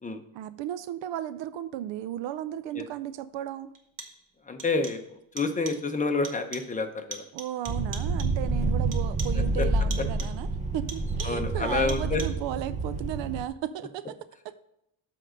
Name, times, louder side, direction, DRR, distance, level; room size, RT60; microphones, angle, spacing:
voice 1, 0.3-3.7 7.3-10.5 10.7-14.2 14.4-14.5, right 12 dB, 70° right, 14 dB, 0.5 m, -34 dB
sound 1, 2.7-2.8 3.7-4.3 4.6-5.1 5.4-5.9 6.2-6.8 7.1-8.5 8.9-9.5 9.9-10.5 10.9-11.5 11.9-12.5, right 4 dB, 40° right, 1.2 m, -43 dB
voice 2, 4.5-5.0 5.3-7.2 9.6-9.7 11.2-12.2, left 3 dB, 15° left, 6 dB, 0.8 m, -28 dB
sound 2, 7.7-13.5, right 2 dB, 15° right, 0.6 m, -28 dB
7.6 x 3.8 x 6.3 m, 0.80 s
cardioid pair, 110°, 47 cm